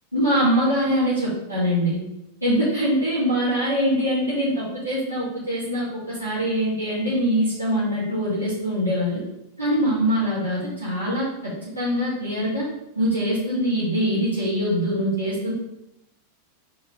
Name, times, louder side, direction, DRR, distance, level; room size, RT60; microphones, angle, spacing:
voice 1, 0.1-2.0 2.4-9.2 9.6-12.7 13.0-15.5, equal, 90° right, -13 dB, 2.5 m, -23 dB
5.0 x 4.3 x 4.9 m, 0.86 s
figure-of-eight pair, 90°, 0 cm